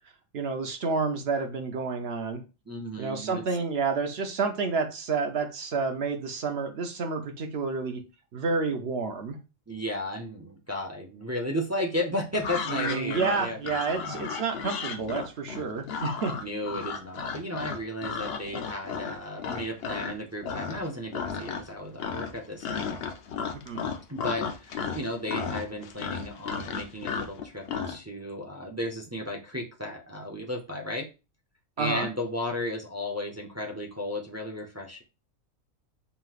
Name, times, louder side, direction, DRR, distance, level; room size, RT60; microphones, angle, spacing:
voice 1, 0.3-2.4 3.0-8.0 8.3-9.4 12.7-16.4 23.7-23.8 31.8-32.1, right 4 dB, 55° right, 6 dB, 0.8 m, -29 dB
voice 2, 2.7-3.4 9.7-13.6 14.0-14.2 16.4-23.0 24.1-31.1 31.8-35.0, left 1 dB, 25° right, 0 dB, 0.4 m, -34 dB
sound 1, 12.3-20.1 20.4-20.9 21.1-21.7 22.0-28.0, left 5 dB, 60° left, 0.7 m, -34 dB
5.6 x 3.0 x 2.4 m, 0.29 s
omnidirectional pair, 1.4 m